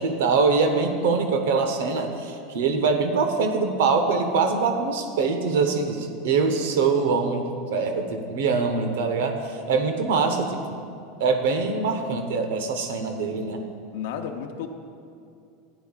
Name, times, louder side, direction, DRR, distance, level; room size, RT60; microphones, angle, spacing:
voice 1, 0.0-10.8 11.2-13.6, right 4 dB, 80° right, 5 dB, 0.9 m, -23 dB
voice 2, 13.9-14.7, left 8 dB, 65° left, 3 dB, 0.6 m, -32 dB
15.0 x 10.0 x 2.4 m, 2.6 s
supercardioid pair, 175°, 0 cm